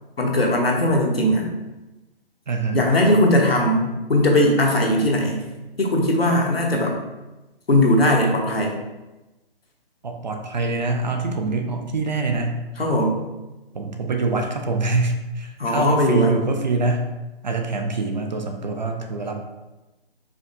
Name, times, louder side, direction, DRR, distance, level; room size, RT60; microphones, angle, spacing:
voice 1, 0.2-1.5 2.7-5.4 5.8-6.9 7.7-8.8 12.8-13.2 15.6-16.3, left 1 dB, 75° left, -1 dB, 1.1 m, -19 dB
voice 2, 2.5-2.9 10.0-12.6 13.7-17.0 17.4-19.4, right 3 dB, 45° right, 4 dB, 0.6 m, -24 dB
5.0 x 3.3 x 2.6 m, 1.1 s
figure-of-eight pair, 140°, 30 cm